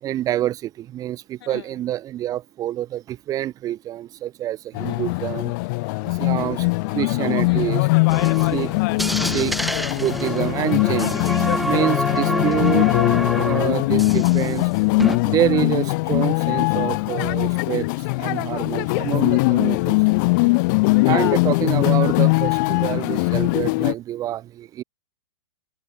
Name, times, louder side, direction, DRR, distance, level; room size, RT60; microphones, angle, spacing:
voice 1, 0.0-5.5 6.0-7.9 8.4-8.7 9.2-9.6 9.9-11.2 11.6-12.9 13.4-14.7 15.2-17.9 18.2-20.0 21.0-24.8, right 13 dB, 25° right, 1.1 m, -26 dB
sound 1, 4.7-23.9, left 26 dB, 45° left, 2.7 m, -21 dB
voice 2, 4.8-5.2 7.5-7.9 8.6-9.0 20.4-21.4, left 12 dB, 60° left, 7.4 m, -35 dB
sound 2, 8.1-14.6 14.9-15.2, equal, ahead, 0.7 m, -27 dB
hypercardioid pair, 130°, 15 cm